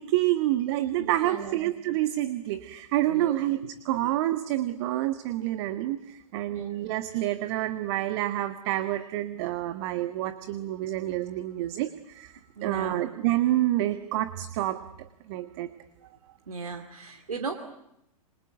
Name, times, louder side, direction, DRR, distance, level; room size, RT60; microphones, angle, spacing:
voice 1, 0.0-15.7, right 14 dB, 45° right, 10 dB, 1.5 m, -28 dB
voice 2, 1.0-1.7 3.1-3.4 6.5-6.8 12.6-13.0 16.5-17.5, right 4 dB, 70° right, 5 dB, 2.6 m, -36 dB
27.5 x 24.5 x 8.0 m, 0.81 s
figure-of-eight pair, 105°, 19 cm